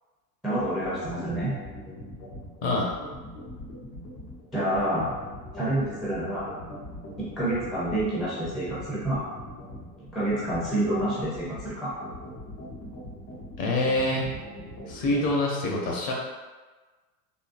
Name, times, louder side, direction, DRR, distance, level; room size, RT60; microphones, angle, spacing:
voice 1, 0.4-1.5 4.5-5.1 5.5-6.5 7.2-9.2 10.1-11.9, right 1 dB, ahead, -9 dB, 0.4 m, -28 dB
sound 1, 0.6-15.3, left 1 dB, 85° left, 1.3 m, -41 dB
voice 2, 13.6-14.3 14.9-16.1, left 2 dB, 45° left, -1 dB, 0.8 m, -25 dB
3.8 x 2.1 x 2.5 m, 1.3 s
supercardioid pair, 120°, 48 cm